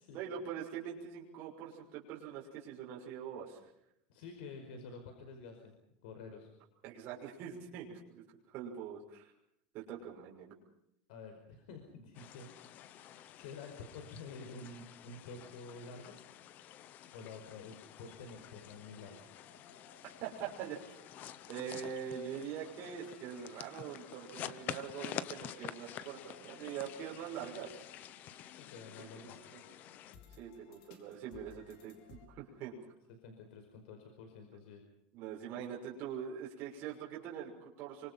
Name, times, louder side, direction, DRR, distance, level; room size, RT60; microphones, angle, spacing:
voice 1, 0.1-3.6 6.8-8.2 8.5-9.3 9.7-10.5 20.2-21.0 21.5-27.8 29.0-29.6 30.4-32.8 35.1-38.1, right 8 dB, 35° right, -3 dB, 6.1 m, -43 dB
voice 2, 4.1-5.7 6.0-6.5 11.1-12.8 13.3-16.2 17.1-19.3 28.5-29.4 33.2-34.8, left 4 dB, 65° left, 5 dB, 5.2 m, -49 dB
sound 1, 12.1-30.2, left 11 dB, 30° left, 0.9 m, -49 dB
sound 2, 18.1-32.3, left 5 dB, 50° left, 5.1 m, -63 dB
27.5 x 25.0 x 5.7 m, 0.77 s
supercardioid pair, 175°, 5 cm